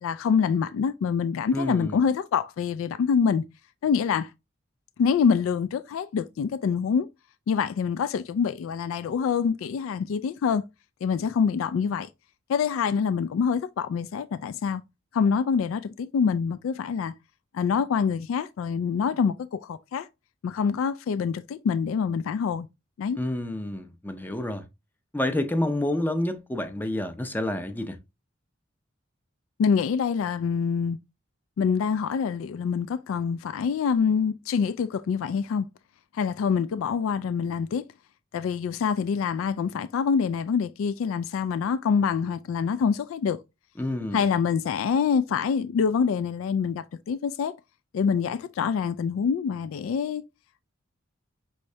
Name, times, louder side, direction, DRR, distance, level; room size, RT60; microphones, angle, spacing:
voice 1, 0.0-3.4 3.8-4.3 5.0-7.1 7.5-10.6 11.0-12.1 12.5-14.8 15.1-17.1 17.5-20.1 20.4-22.7 23.0-23.2 29.6-31.0 31.6-35.7 36.1-37.8 38.3-43.4 44.1-47.5 47.9-50.2, left 6 dB, 85° left, 0.3 m, -25 dB
voice 2, 1.5-2.0 23.2-24.6 25.1-28.0 43.8-44.2, left 1 dB, 10° left, 0.4 m, -29 dB
5.6 x 3.2 x 2.7 m
head